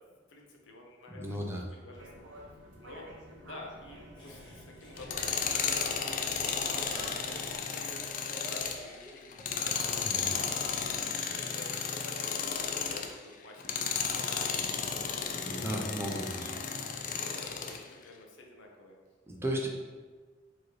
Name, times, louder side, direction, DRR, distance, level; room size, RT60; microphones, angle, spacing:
voice 1, 0.1-2.5 2.8-3.1 3.4-4.4 4.7-10.7 11.2-14.8 15.2-15.9 16.4-16.8 17.0-19.0, left 2 dB, 80° left, 1 dB, 0.7 m, -50 dB
voice 2, 1.1-1.7 10.0-10.3 15.4-16.5 19.3-19.7, right 1 dB, 15° right, 0 dB, 0.5 m, -35 dB
sound 1, 1.9-7.6, right 1 dB, 75° right, 0.7 m, -49 dB
Laughter, 4.1-10.5, right 1 dB, 25° left, 1.2 m, -51 dB
Tools, 5.0-13.2 13.6-17.8, left 6 dB, 45° left, 0.3 m, -33 dB
4.7 x 3.1 x 3.0 m, 1.4 s
head